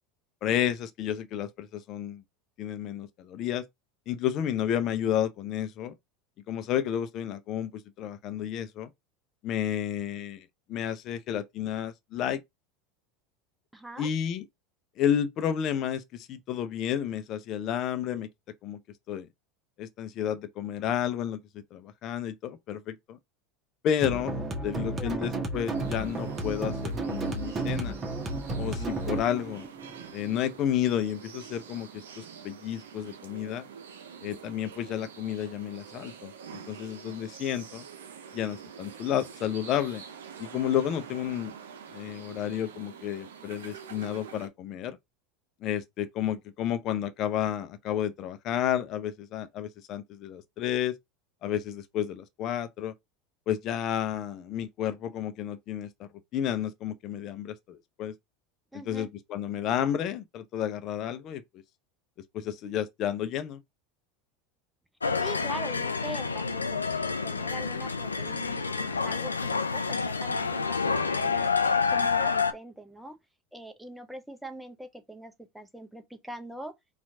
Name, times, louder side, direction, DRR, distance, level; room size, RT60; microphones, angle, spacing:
voice 1, 0.4-2.2 2.6-3.6 4.1-5.9 6.5-8.9 9.4-12.4 14.0-14.4 15.0-18.3 18.6-18.8 19.1-19.3 19.8-21.4 21.7-23.2 23.8-28.0 28.6-29.7 30.1-31.9 32.2-33.7 34.2-37.8 38.3-40.0 40.4-41.5 41.9-45.0 45.6-51.0 51.4-52.9 53.5-58.1 58.9-61.4 62.3-63.6, left 10 dB, 45° left, 0.6 m, -31 dB
voice 2, 13.7-14.1 25.0-25.3 58.7-59.1 65.2-71.5 71.9-73.2 73.5-76.7, right 1 dB, 5° right, 0.8 m, -42 dB
sound 1, 24.0-31.0, right 2 dB, 25° right, 1.1 m, -33 dB
sound 2, 25.7-44.5, right 7 dB, 70° right, 0.7 m, -46 dB
sound 3, 65.0-72.5, left 5 dB, 85° left, 0.4 m, -28 dB
4.3 x 2.5 x 2.7 m
figure-of-eight pair, 80°, 0 cm